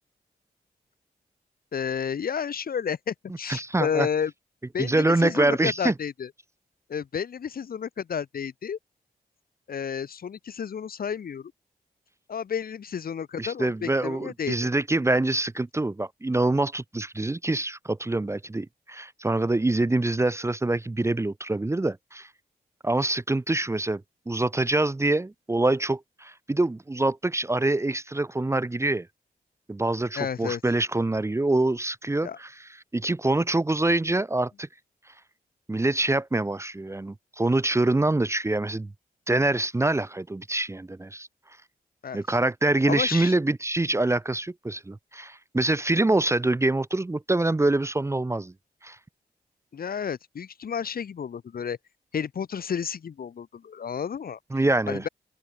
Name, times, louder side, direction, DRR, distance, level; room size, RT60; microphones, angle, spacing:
voice 1, 1.7-4.3 4.7-6.3 6.9-8.8 9.7-11.5 12.3-14.6 30.2-30.6 32.2-32.4 42.0-42.2 42.9-43.3 49.7-51.8 52.1-54.4 54.9-55.1, left 7 dB, 65° left, 3.1 m, -31 dB
voice 2, 3.5-4.1 4.8-5.9 13.4-22.3 22.8-29.1 29.7-34.7 35.7-38.9 39.3-41.3 42.1-48.5 48.8-49.0 54.5-55.1, right 2 dB, 15° right, 0.9 m, -25 dB
open air
cardioid pair, 75°, 16 cm